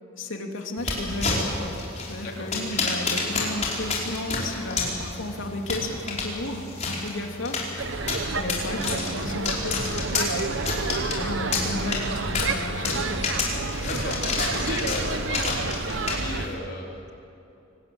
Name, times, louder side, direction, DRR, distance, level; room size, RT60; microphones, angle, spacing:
voice 1, 0.1-1.7 2.1-7.7 8.4-10.9 11.2-13.4, left 1 dB, 80° left, 3 dB, 2.8 m, -33 dB
sound 1, 0.8-16.5, left 3 dB, 35° left, 5.1 m, -30 dB
voice 2, 2.2-2.5 10.9-11.2 13.8-17.1, left 2 dB, 55° left, 0 dB, 3.8 m, -36 dB
sound 2, 7.8-16.5, right 3 dB, 65° right, 1.1 m, -30 dB
24.5 x 19.5 x 8.8 m, 2.9 s
head